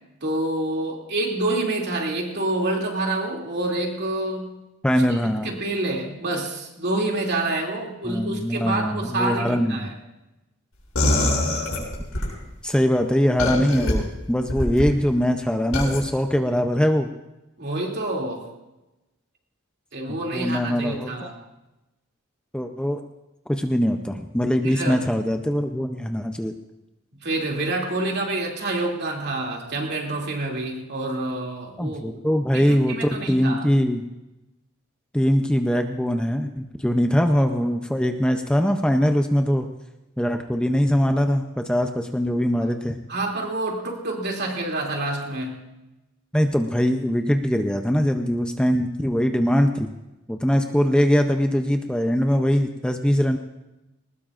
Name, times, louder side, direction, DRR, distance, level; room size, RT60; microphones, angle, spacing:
voice 1, 0.2-4.5 5.1-9.9 17.6-18.5 19.9-21.4 24.6-25.0 27.2-32.2 32.5-33.6 43.1-45.6, right 2 dB, 55° right, 0 dB, 2.7 m, -27 dB
voice 2, 4.8-5.5 8.0-9.9 12.6-17.1 20.1-21.3 22.5-23.0 23.5-26.5 31.8-34.0 35.1-39.7 40.2-43.0 46.3-49.9 50.3-53.4, equal, 5° left, 5 dB, 0.6 m, -22 dB
sound 1, 10.9-12.3 13.4-13.9 14.5-14.9 15.7-16.0, left 1 dB, 80° left, 6.9 m, -23 dB
20.0 x 19.5 x 2.5 m, 1.0 s
head